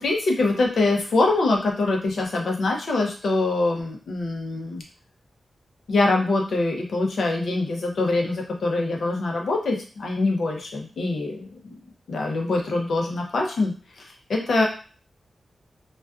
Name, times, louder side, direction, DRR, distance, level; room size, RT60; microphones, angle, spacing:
voice 1, 0.0-4.8 5.9-11.7 12.1-14.6, left 2 dB, 75° left, 0 dB, 0.6 m, -24 dB
2.5 x 2.3 x 2.3 m, 0.39 s
wide cardioid pair, 105°, 0 cm